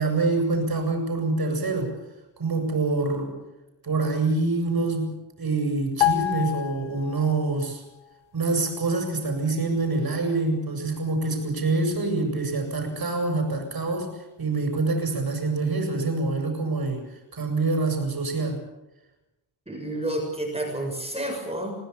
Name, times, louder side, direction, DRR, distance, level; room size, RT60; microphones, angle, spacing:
voice 1, 0.0-1.9 2.4-3.4 3.8-7.8 8.3-14.1 14.4-17.0 17.3-18.6, right 3 dB, 50° right, 4 dB, 7.9 m, -26 dB
sound 1, 6.0-7.6 7.9-8.1, left 13 dB, 75° left, 1.8 m, -27 dB
voice 2, 19.7-21.7, right 1 dB, 10° right, 1 dB, 7.0 m, -30 dB
27.5 x 18.5 x 7.2 m, 0.99 s
wide cardioid pair, 105°, 48 cm